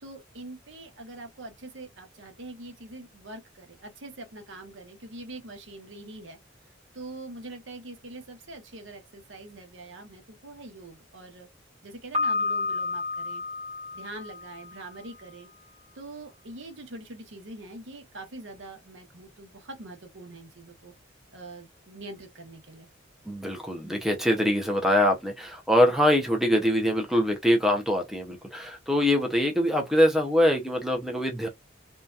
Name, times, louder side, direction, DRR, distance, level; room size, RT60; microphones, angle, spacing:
voice 1, 0.0-6.4 6.9-11.5 11.8-13.4 13.9-15.5 15.9-20.9 21.3-22.9, right 2 dB, 70° right, 0.9 m, -44 dB
Piano, 12.1-15.0, left 3 dB, 35° right, 1.1 m, -31 dB
voice 2, 23.3-31.5, equal, ahead, 0.5 m, -23 dB
2.7 x 2.2 x 2.3 m
head